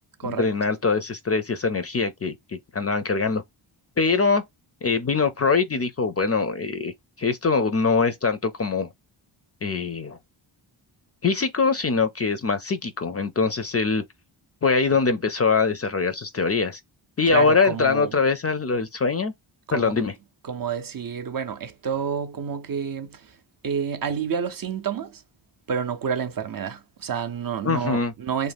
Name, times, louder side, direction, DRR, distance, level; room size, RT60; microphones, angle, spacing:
voice 1, 0.2-3.4 4.0-4.4 4.8-8.9 9.6-10.2 11.2-14.0 14.6-16.8 17.2-19.3 19.7-20.1 27.6-28.1, left 4 dB, 30° left, 0.4 m, -23 dB
voice 2, 17.3-18.1 19.7-20.1 20.4-23.4 23.6-25.2 25.7-28.5, right 7 dB, 45° right, 0.5 m, -29 dB
2.5 x 2.1 x 3.3 m
cardioid pair, 50°, 50 cm